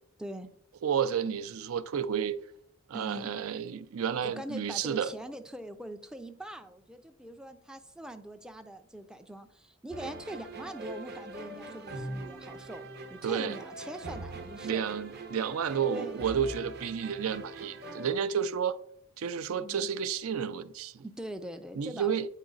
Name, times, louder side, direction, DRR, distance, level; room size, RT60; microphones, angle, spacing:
voice 1, 0.8-2.4 2.9-5.1 13.2-13.6 14.6-18.8 19.2-21.0 21.8-22.3, right 7 dB, 75° right, 0.4 m, -31 dB
voice 2, 2.9-3.3 4.2-15.0 15.9-16.3 19.6-19.9 21.0-22.3, right 1 dB, 5° right, 0.4 m, -42 dB
sound 1, 9.9-18.1, right 2 dB, 50° right, 0.8 m, -42 dB
8.2 x 4.8 x 3.8 m
head